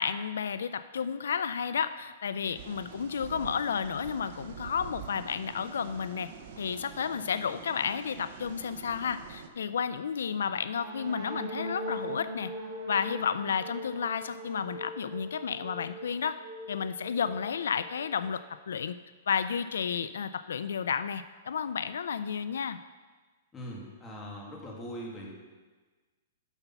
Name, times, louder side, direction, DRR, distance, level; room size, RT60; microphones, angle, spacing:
voice 1, 0.0-6.3 6.6-12.5 12.9-16.4 16.7-18.4 18.7-19.0 19.3-22.8, left 7 dB, 85° left, 13 dB, 0.4 m, -32 dB
sound 1, 2.5-9.5, right 7 dB, 50° right, 0.9 m, -46 dB
sound 2, 10.8-18.5, right 1 dB, 25° right, 1.8 m, -41 dB
voice 2, 23.5-25.4, equal, 15° left, -3 dB, 2.2 m, -41 dB
9.9 x 6.8 x 5.8 m, 1.4 s
hypercardioid pair, 160°, 0 cm